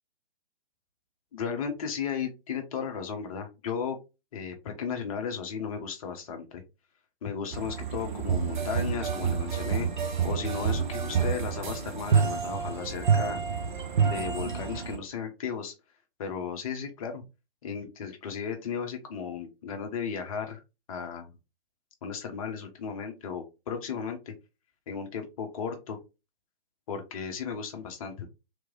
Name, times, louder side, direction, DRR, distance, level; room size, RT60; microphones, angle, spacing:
voice 1, 1.3-4.0 4.3-6.6 7.2-9.9 10.2-13.4 14.0-15.7 16.2-17.2 17.6-20.6 20.9-21.3 22.0-24.3 24.9-26.0 26.9-28.3, left 6 dB, 35° left, 4 dB, 1.0 m, -35 dB
sound 1, 7.5-15.0, right 6 dB, 50° right, 0.8 m, -28 dB
3.5 x 3.2 x 3.8 m, 0.26 s
figure-of-eight pair, 125°, 30 cm